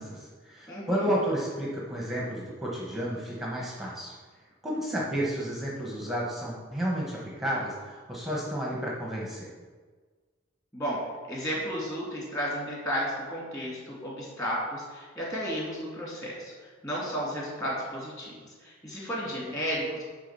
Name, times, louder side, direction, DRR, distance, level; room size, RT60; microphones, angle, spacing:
voice 1, 0.0-4.1 4.6-9.5, equal, ahead, -4 dB, 1.2 m, -31 dB
voice 2, 0.7-1.1 10.7-11.0 11.3-16.5 16.8-18.4 18.6-20.0, equal, 15° left, -5 dB, 2.5 m, -33 dB
9.4 x 3.8 x 6.7 m, 1.4 s
head